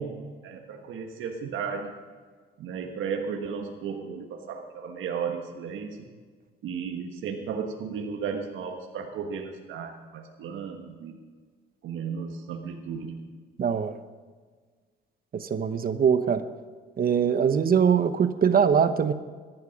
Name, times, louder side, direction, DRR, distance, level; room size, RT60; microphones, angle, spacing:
voice 1, 0.0-1.9 2.6-6.1 6.6-11.2 11.8-13.2, right 6 dB, 80° right, 3 dB, 1.5 m, -34 dB
voice 2, 13.6-13.9 15.3-16.4 17.0-19.1, right 7 dB, 45° right, 10 dB, 1.0 m, -22 dB
15.0 x 11.5 x 5.3 m, 1.6 s
cardioid pair, 90°, 20 cm